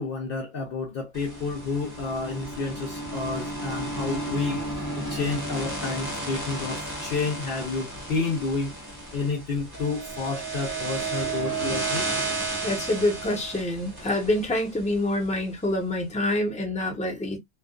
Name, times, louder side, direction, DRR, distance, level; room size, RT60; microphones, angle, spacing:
voice 1, 0.0-4.6 5.0-8.7 9.1-12.1, left 4 dB, 60° left, 0.7 m, -30 dB
sound 1, 1.1-15.3, right 2 dB, 20° right, 0.9 m, -33 dB
voice 2, 12.6-17.4, left 1 dB, 5° left, 0.7 m, -26 dB
2.4 x 2.2 x 2.3 m
omnidirectional pair, 1.3 m